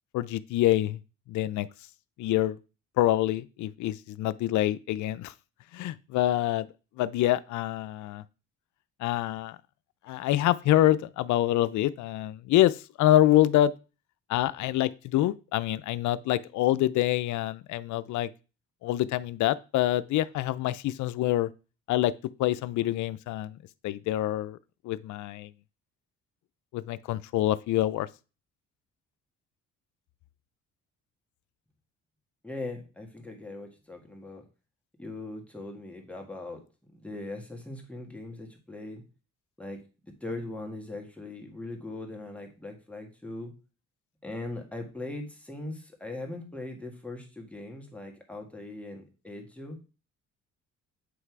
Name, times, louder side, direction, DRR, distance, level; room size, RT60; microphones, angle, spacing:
voice 1, 0.1-1.0 1.3-1.7 2.2-2.6 3.0-5.3 5.7-6.7 7.0-8.2 9.0-9.6 10.1-13.7 14.3-18.3 18.8-21.5 21.9-22.1 22.4-23.6 23.8-24.6 24.8-25.5 26.7-28.1, left 14 dB, 75° left, 0.5 m, -26 dB
voice 2, 32.4-34.4 35.0-36.6 36.9-39.0 39.6-43.5 44.2-49.8, left 2 dB, 5° left, 1.8 m, -40 dB
8.0 x 3.2 x 4.6 m
cardioid pair, 90°, 30 cm